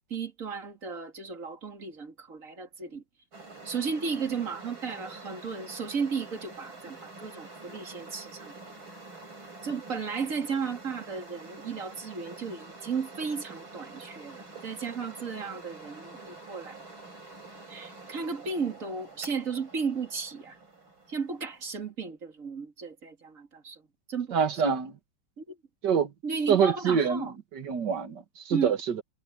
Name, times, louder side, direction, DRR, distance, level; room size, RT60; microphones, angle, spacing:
voice 1, 0.1-3.0 3.6-8.5 9.6-16.8 17.7-20.6 21.1-23.8 24.1-24.7 25.4-25.6 26.2-27.3 28.5-28.7, right 5 dB, 40° right, 3.0 m, -34 dB
sound 1, 3.3-21.8, right 3 dB, 75° right, 7.5 m, -47 dB
voice 2, 24.3-25.0 25.8-26.1 26.5-29.0, right 7 dB, 60° right, 2.3 m, -26 dB
omnidirectional pair, 2.2 m